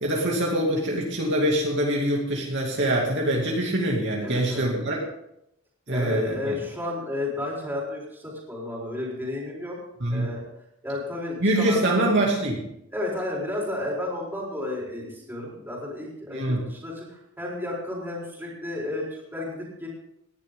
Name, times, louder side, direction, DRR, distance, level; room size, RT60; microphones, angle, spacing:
voice 1, 0.0-5.0 5.9-6.6 10.0-10.3 11.4-12.6 16.3-16.6, right 1 dB, 55° right, -2 dB, 2.5 m, -24 dB
voice 2, 4.2-4.6 5.9-9.8 10.1-10.4 10.8-12.2 12.9-19.9, left 2 dB, 10° right, -4 dB, 4.4 m, -32 dB
18.0 x 11.0 x 3.8 m, 0.81 s
head